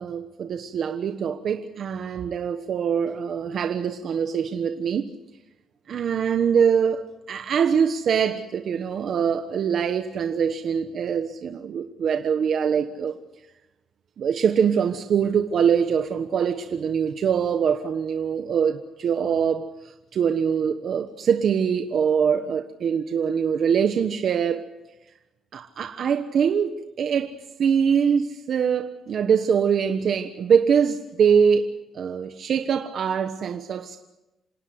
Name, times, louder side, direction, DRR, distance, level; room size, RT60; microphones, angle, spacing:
voice 1, 0.0-5.1 5.9-13.2 14.2-24.6 25.5-34.0, right 7 dB, 55° right, 1.2 m, -23 dB
27.0 x 18.5 x 8.1 m
cardioid pair, 130°, 0 cm